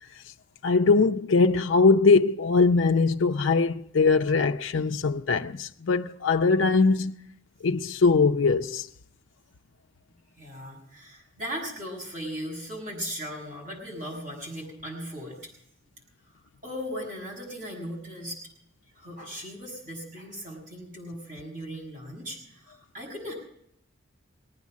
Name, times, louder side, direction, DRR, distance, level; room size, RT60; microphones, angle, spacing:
voice 1, 0.6-7.1 7.6-8.9, left 4 dB, 70° left, 0.5 m, -21 dB
voice 2, 10.4-15.4 16.6-18.4 18.9-23.3, equal, 45° right, 6.2 m, -38 dB
19.5 x 9.5 x 7.3 m
head